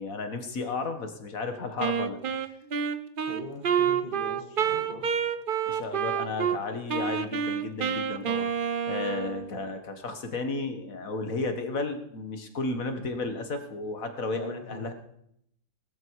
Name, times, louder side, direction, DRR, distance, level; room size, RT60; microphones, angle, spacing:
voice 1, 0.0-2.2 5.7-8.5 8.9-14.9, left 3 dB, 50° left, 7 dB, 1.9 m, -33 dB
Wind instrument woodwind instrument, 1.8-6.6 6.9-9.5, right 7 dB, 75° right, 0.4 m, -28 dB
voice 2, 3.3-5.1 14.3-14.9, equal, 25° left, 0 dB, 2.4 m, -41 dB
18.5 x 13.5 x 4.8 m, 0.75 s
omnidirectional pair, 2.0 m